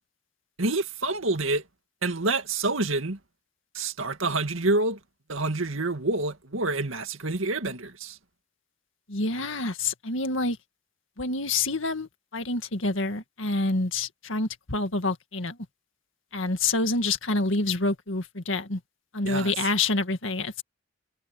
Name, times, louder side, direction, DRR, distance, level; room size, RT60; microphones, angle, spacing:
voice 1, 0.6-1.6 2.0-3.2 3.7-5.0 5.3-8.2 19.2-19.5, right 2 dB, 85° right, 2.2 m, -27 dB
voice 2, 9.1-10.6 11.2-15.6 16.3-18.8 19.1-20.6, left 3 dB, 75° left, 2.0 m, -27 dB
head